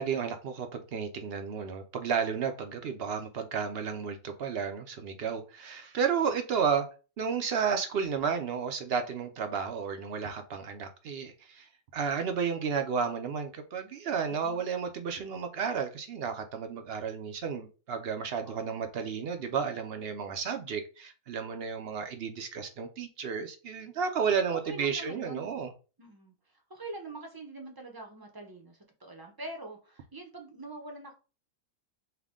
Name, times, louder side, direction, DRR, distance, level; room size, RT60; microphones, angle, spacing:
voice 1, 0.0-6.9 7.2-11.7 11.9-25.7, right 6 dB, 55° right, 7 dB, 0.7 m, -32 dB
voice 2, 18.4-18.8 24.4-25.5 26.0-26.3 26.7-31.1, right 2 dB, 20° right, 2 dB, 0.6 m, -44 dB
5.7 x 2.2 x 3.6 m, 0.34 s
omnidirectional pair, 1.5 m